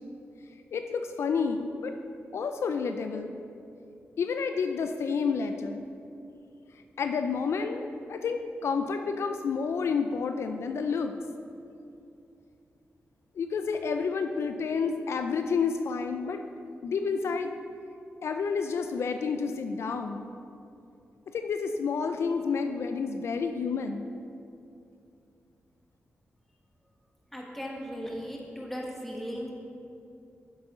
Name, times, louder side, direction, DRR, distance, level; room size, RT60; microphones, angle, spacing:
voice 1, 0.7-1.9 2.3-3.3 4.2-5.8 7.0-11.1 13.4-16.4 16.8-17.5 18.2-20.3 21.3-24.1, left 5 dB, 70° left, 7 dB, 0.4 m, -30 dB
voice 2, 27.3-29.5, equal, 5° left, -2 dB, 1.4 m, -37 dB
8.1 x 7.2 x 3.7 m, 2.6 s
cardioid pair, 95°, 5 cm